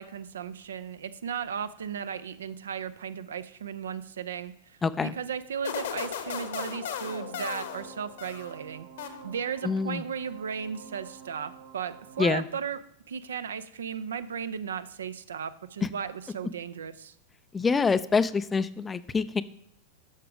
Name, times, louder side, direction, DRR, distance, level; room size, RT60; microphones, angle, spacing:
voice 1, 0.0-12.8 13.1-17.1, right 7 dB, 65° right, 13 dB, 0.6 m, -36 dB
voice 2, 4.8-5.1 9.6-10.0 12.2-12.4 17.5-19.4, left 5 dB, 15° left, 15 dB, 0.5 m, -26 dB
sound 1, 5.6-8.6 9.0-9.6, left 8 dB, 60° left, 1.2 m, -36 dB
sound 2, 7.0-12.3, right 8 dB, 50° right, 1.3 m, -49 dB
11.0 x 6.8 x 4.9 m, 0.74 s
figure-of-eight pair, 90°, 0 cm